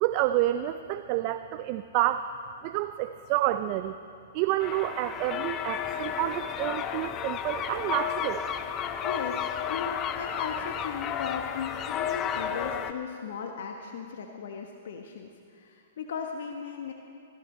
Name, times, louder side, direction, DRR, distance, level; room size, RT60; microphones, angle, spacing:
voice 1, 0.0-2.2 2.6-3.9 4.3-8.4, right 14 dB, 45° right, 10 dB, 0.5 m, -29 dB
sound 1, 4.6-12.9, left 9 dB, 30° left, 0.7 m, -32 dB
voice 2, 9.0-15.3 15.6-16.9, left 6 dB, 65° left, 3 dB, 1.1 m, -37 dB
16.5 x 14.0 x 4.4 m, 2.4 s
hypercardioid pair, 115°, 0 cm